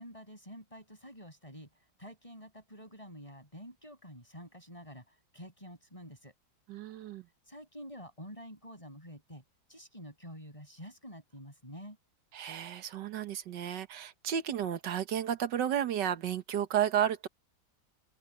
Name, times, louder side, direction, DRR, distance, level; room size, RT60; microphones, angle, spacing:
voice 1, 0.0-1.7 2.0-6.3 7.5-9.4 9.7-12.0, equal, 20° left, 8.0 m, -48 dB
voice 2, 6.7-7.2 12.3-17.3, right 10 dB, 85° right, 1.8 m, -32 dB
open air
omnidirectional pair, 1.8 m